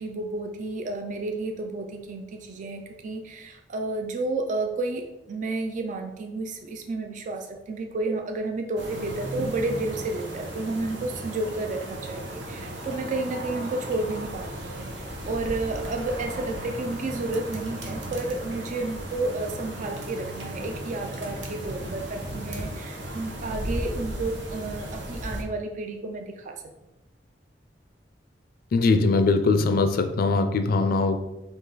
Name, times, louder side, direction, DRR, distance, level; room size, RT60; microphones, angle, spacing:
voice 1, 0.0-26.6, right 2 dB, 45° right, 4 dB, 0.4 m, -31 dB
sound 1, 8.8-25.4, right 1 dB, 75° right, 0.8 m, -35 dB
voice 2, 28.7-31.2, left 3 dB, 55° left, 8 dB, 0.4 m, -21 dB
5.2 x 2.4 x 3.9 m, 0.96 s
head